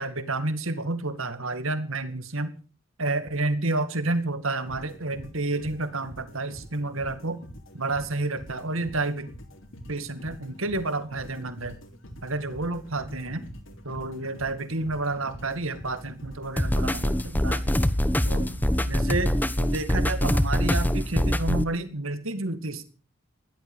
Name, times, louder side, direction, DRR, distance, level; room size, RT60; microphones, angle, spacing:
voice 1, 0.0-2.5 3.0-7.4 7.7-9.3 9.9-11.8 12.2-13.5 13.8-17.6 18.2-18.6 18.9-19.3 19.6-22.8, right 2 dB, 75° right, 11 dB, 2.2 m, -30 dB
sound 1, 4.7-19.9, equal, 65° left, 3.5 m, -45 dB
sound 2, 16.6-21.6, equal, 10° left, 1.1 m, -24 dB
16.0 x 12.0 x 7.2 m, 0.37 s
head